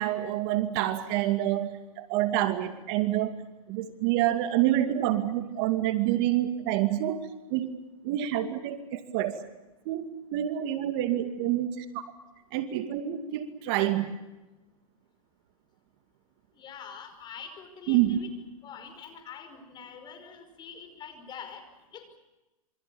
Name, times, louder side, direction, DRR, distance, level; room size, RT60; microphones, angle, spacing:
voice 1, 0.0-1.7 2.0-3.3 3.7-7.2 7.5-7.7 8.0-9.4 9.9-12.0 12.5-14.2 17.9-18.2, right 13 dB, 45° right, 8 dB, 2.4 m, -27 dB
voice 2, 16.6-18.3 18.6-21.7 21.9-22.2, left 6 dB, 25° left, 8 dB, 5.5 m, -45 dB
27.0 x 25.5 x 7.1 m, 1.0 s
hypercardioid pair, 140°, 18 cm